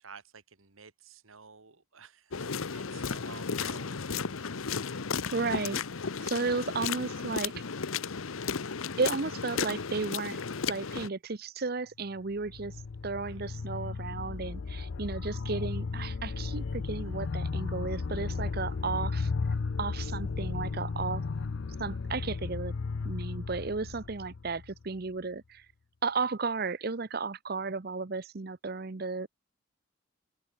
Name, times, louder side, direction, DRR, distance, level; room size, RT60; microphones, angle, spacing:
voice 1, 0.0-4.6 13.2-13.4, right 5 dB, 85° right, 2.0 m, -52 dB
sound 1, 2.3-11.1, left 5 dB, 90° left, 0.9 m, -34 dB
voice 2, 5.3-5.8 6.2-7.7 9.0-10.4 10.7-12.8 13.0-19.3 19.8-21.2 21.8-22.7 23.0-25.7 26.0-29.3, right 4 dB, 50° right, 0.7 m, -34 dB
sound 2, 12.2-25.0, left 4 dB, 70° left, 0.5 m, -35 dB
open air
head